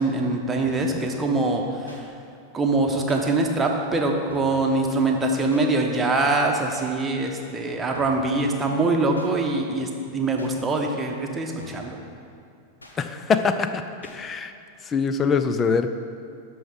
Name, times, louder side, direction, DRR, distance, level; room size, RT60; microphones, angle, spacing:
voice 1, 0.0-2.1 2.5-12.0, right 2 dB, 15° right, 1 dB, 1.1 m, -23 dB
sound 1, 0.7-1.0 1.9-2.0 3.1-3.3 4.3-4.7 5.5-5.7 6.7-6.9 7.9-8.3 9.2-9.3 10.4-10.5 11.6-11.9 12.8-13.0 14.0-14.2, left 1 dB, 80° left, 1.1 m, -45 dB
voice 2, 13.0-14.5 14.8-15.9, left 5 dB, 25° left, 9 dB, 0.5 m, -23 dB
12.5 x 4.7 x 5.3 m, 2.5 s
figure-of-eight pair, 90°, 0 cm